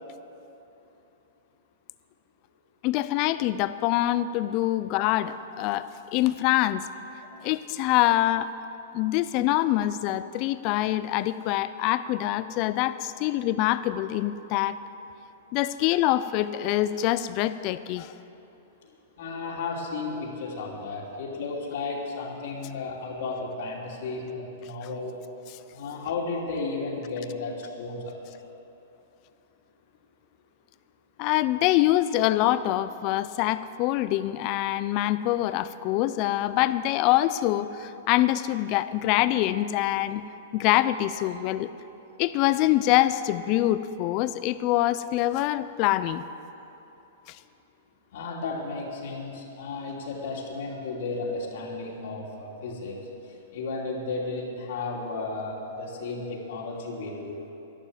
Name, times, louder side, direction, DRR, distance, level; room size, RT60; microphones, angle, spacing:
voice 1, 2.8-6.9 7.4-8.5 8.9-14.8 15.5-18.1 25.5-25.6 31.2-40.2 40.5-41.7 42.2-46.2 47.3-47.4, left 14 dB, 35° left, 14 dB, 0.5 m, -25 dB
voice 2, 19.2-25.2 25.7-28.4 48.1-53.1 53.5-57.4, left 3 dB, 60° left, -2 dB, 2.8 m, -33 dB
12.0 x 11.5 x 8.0 m, 3.0 s
hypercardioid pair, 160°, 0 cm